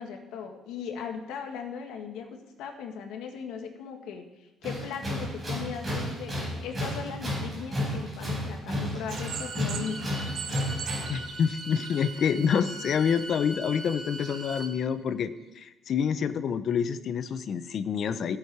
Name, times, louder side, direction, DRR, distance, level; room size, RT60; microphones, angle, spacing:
voice 1, 0.0-4.2 4.6-6.3 6.6-10.2, left 7 dB, 90° left, 4 dB, 1.7 m, -38 dB
Tools, 4.6-11.2, equal, 15° right, 5.0 m, -32 dB
sound 1, 8.9-12.1, right 9 dB, 90° right, 1.1 m, -39 dB
Bowed string instrument, 9.1-14.7, right 2 dB, 45° right, 2.9 m, -41 dB
voice 2, 11.1-18.4, left 7 dB, 40° left, 13 dB, 0.6 m, -27 dB
15.0 x 8.1 x 4.8 m, 1.0 s
cardioid pair, 175°, 0 cm